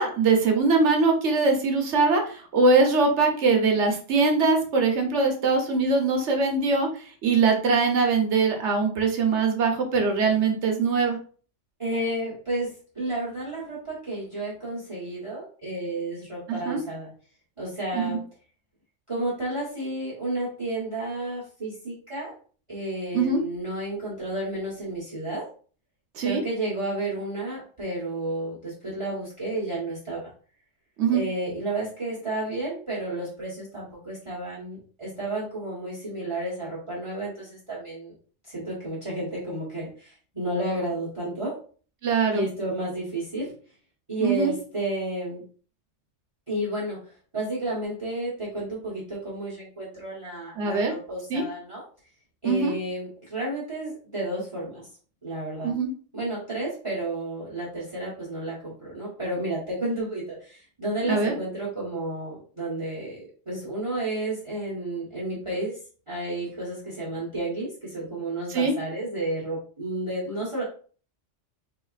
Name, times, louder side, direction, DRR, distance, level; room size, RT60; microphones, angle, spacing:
voice 1, 0.0-6.9 7.2-11.2 16.5-16.8 17.9-18.2 23.1-23.4 26.2-26.4 31.0-31.2 42.0-42.4 44.2-44.5 50.6-50.9 51.3-51.4 52.4-52.8 55.6-55.9 61.0-61.3 68.5-68.7, right 4 dB, 65° right, 3 dB, 1.1 m, -22 dB
voice 2, 11.8-12.7 12.9-17.1 17.6-18.2 19.1-22.3 22.7-25.4 26.2-30.3 31.1-38.1 38.5-41.5 42.3-43.5 44.1-45.4 46.5-51.8 52.4-54.9 55.2-55.7 56.1-65.8 66.1-70.6, right 1 dB, 25° right, -6 dB, 1.2 m, -31 dB
4.1 x 2.8 x 2.4 m, 0.41 s
omnidirectional pair, 1.3 m